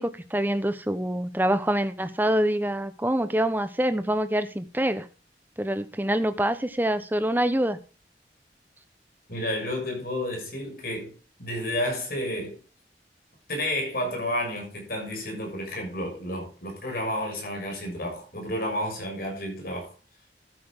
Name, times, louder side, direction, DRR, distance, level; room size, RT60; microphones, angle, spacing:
voice 1, 0.0-5.1 5.6-7.8, right 1 dB, 10° right, 1.0 m, -25 dB
voice 2, 9.3-11.1 11.4-12.6 13.5-19.9, left 1 dB, 55° left, 6.5 m, -31 dB
13.0 x 9.5 x 3.7 m
head